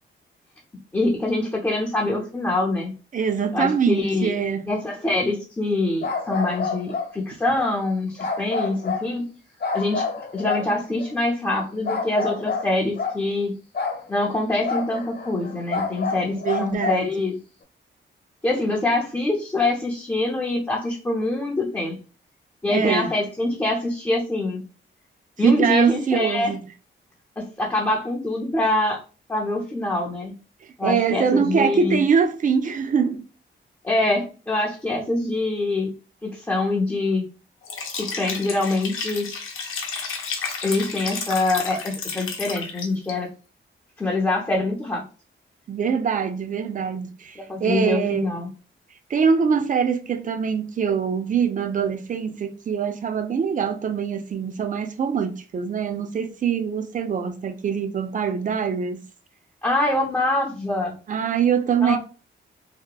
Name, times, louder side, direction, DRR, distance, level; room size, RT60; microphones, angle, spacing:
voice 1, 0.9-2.9 3.5-4.3 4.7-9.3 9.7-13.5 14.1-17.4 18.4-22.0 22.6-24.6 25.4-26.5 27.4-29.0 29.3-30.3 30.8-32.0 33.8-35.9 36.2-37.2 37.9-39.3 40.6-43.3 44.0-45.1 47.4-48.5 59.6-61.0 61.8-62.0, left 2 dB, 10° left, 0.5 m, -24 dB
voice 2, 3.1-4.6 16.4-17.1 22.7-23.1 25.4-26.6 30.6-33.2 45.7-48.3 49.1-59.0 61.1-62.0, right 6 dB, 40° right, 0.4 m, -23 dB
sound 1, 6.0-7.1 7.5-7.7 8.2-9.1 9.6-11.1 11.8-13.2 13.7-14.0 14.6-17.1, left 4 dB, 55° left, 1.0 m, -28 dB
Liquid, 37.6-43.1, left 5 dB, 85° left, 0.7 m, -32 dB
2.8 x 2.1 x 2.3 m
wide cardioid pair, 110°, 21 cm